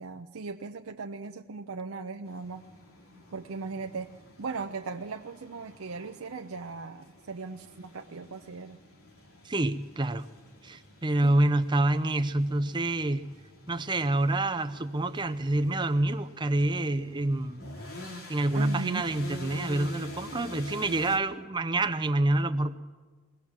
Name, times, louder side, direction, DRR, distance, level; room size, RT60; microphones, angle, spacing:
voice 1, 0.0-2.6 3.3-4.1 4.4-8.8 11.2-11.3 18.5-19.1, right 4 dB, 80° right, 5 dB, 0.6 m, -38 dB
sound 1, 2.2-21.2, left 2 dB, 85° left, 2.7 m, -48 dB
voice 2, 9.4-10.3 10.6-13.2 13.7-17.8 18.3-22.8, right 2 dB, 20° right, 9 dB, 0.6 m, -27 dB
22.5 x 17.5 x 7.4 m, 1.4 s
head